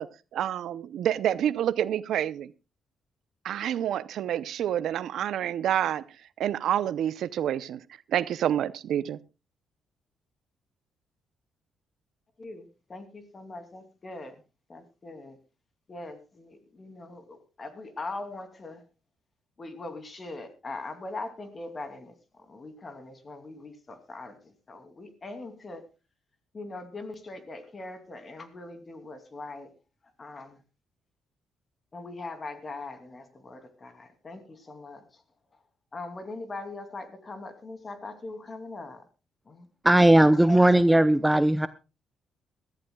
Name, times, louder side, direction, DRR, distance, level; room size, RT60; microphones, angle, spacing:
voice 1, 0.0-2.5 3.4-6.0 6.4-7.8 8.1-9.2, right 10 dB, 75° right, 0.6 m, -28 dB
voice 2, 12.4-14.3 14.7-15.4 15.9-18.8 19.6-25.9 26.5-29.7 30.2-30.6 31.9-35.2 35.9-39.1 39.5-39.7 40.2-40.8, left 2 dB, 35° left, 2.7 m, -41 dB
voice 3, 39.8-41.7, right 1 dB, 5° right, 0.6 m, -18 dB
21.5 x 14.0 x 2.3 m
cardioid pair, 90°, 0 cm